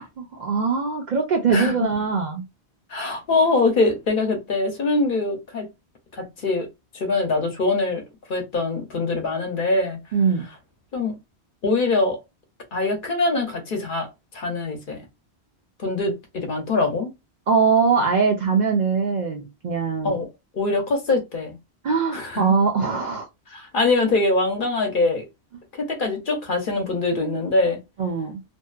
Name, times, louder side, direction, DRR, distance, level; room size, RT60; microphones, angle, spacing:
voice 1, 0.0-2.4 10.1-10.5 17.5-20.1 21.8-23.3 28.0-28.4, right 5 dB, 55° right, 0.5 m, -22 dB
voice 2, 2.9-5.7 6.1-6.7 6.9-8.0 8.3-10.0 10.9-11.2 11.6-12.2 12.7-14.1 14.3-15.1 15.8-17.1 20.0-20.3 20.5-21.5 22.1-22.6 23.5-25.2 25.7-27.8, left 3 dB, 55° left, 0.8 m, -23 dB
2.6 x 2.2 x 2.3 m
omnidirectional pair, 1.1 m